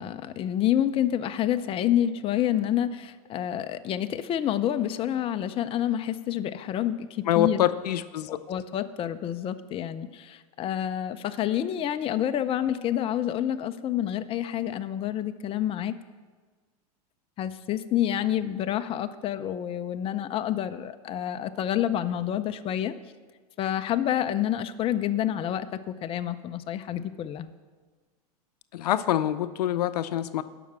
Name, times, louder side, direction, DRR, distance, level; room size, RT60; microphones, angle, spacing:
voice 1, 0.0-7.6 8.3-16.0 17.4-22.9 23.6-27.5, left 11 dB, 30° left, 10 dB, 0.5 m, -28 dB
voice 2, 7.3-8.4 28.7-30.4, left 12 dB, 85° left, 13 dB, 0.5 m, -25 dB
12.0 x 6.0 x 7.3 m, 1.4 s
hypercardioid pair, 115°, 20 cm